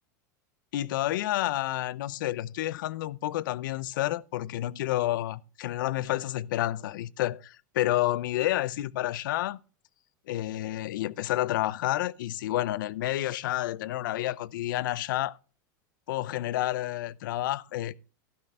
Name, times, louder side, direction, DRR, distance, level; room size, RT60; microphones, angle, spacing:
voice 1, 0.7-9.6 10.3-15.4 16.1-17.9, left 15 dB, 85° left, 0.5 m, -30 dB
12.0 x 6.4 x 4.1 m
supercardioid pair, 155°, 10 cm